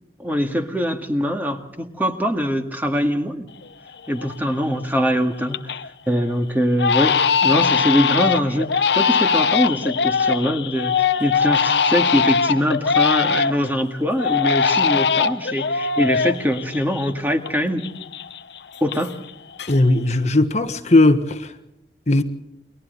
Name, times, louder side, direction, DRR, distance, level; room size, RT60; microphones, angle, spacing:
voice 1, 0.2-3.5 4.1-5.7 6.1-17.9 18.8-19.2, equal, 10° right, 2.0 m, -23 dB
Crying sobbing, 3.6-3.7 4.2-4.6 5.0-5.9 6.2-6.3 6.8-13.7 14.2-17.5 17.8-19.3 19.6-20.1, left 6 dB, 70° left, 0.8 m, -21 dB
voice 2, 19.7-21.5 22.1-22.2, left 2 dB, 40° left, 1.3 m, -17 dB
29.5 x 22.5 x 4.1 m
head